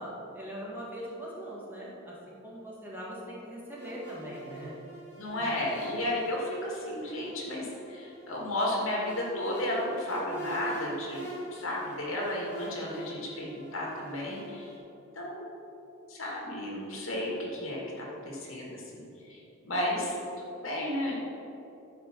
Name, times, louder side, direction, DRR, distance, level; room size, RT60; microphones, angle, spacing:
voice 1, 0.0-4.8 5.4-5.5, equal, 10° right, -6 dB, 2.1 m, -41 dB
sound 1, 3.7-14.8, right 2 dB, 10° left, 2.3 m, -44 dB
voice 2, 5.2-14.7 15.2-15.7 16.1-19.0 19.3-19.4 19.6-20.1 20.5-21.1, left 1 dB, 70° left, -3 dB, 2.4 m, -33 dB
11.5 x 5.1 x 6.5 m, 2.9 s
head